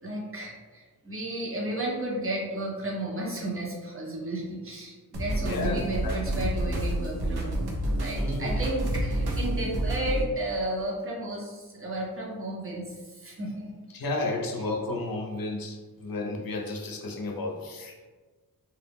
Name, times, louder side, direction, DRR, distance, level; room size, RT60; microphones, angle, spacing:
voice 1, 0.0-7.6 7.9-13.8, right 1 dB, 35° right, -3 dB, 0.7 m, -33 dB
sound 1, 5.1-10.2, right 1 dB, 80° right, 0.6 m, -29 dB
voice 2, 5.4-6.2 8.2-8.6 13.9-18.1, left 2 dB, 65° left, 1 dB, 0.6 m, -32 dB
2.3 x 2.0 x 3.4 m, 1.3 s
wide cardioid pair, 85°, 38 cm